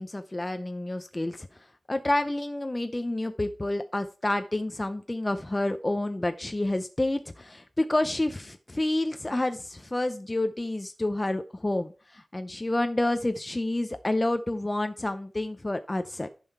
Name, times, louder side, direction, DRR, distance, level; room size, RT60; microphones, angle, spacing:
voice 1, 0.0-16.3, left 1 dB, 20° left, 9 dB, 0.6 m, -29 dB
10.5 x 5.7 x 4.5 m, 0.36 s
wide cardioid pair, 120°, 0 cm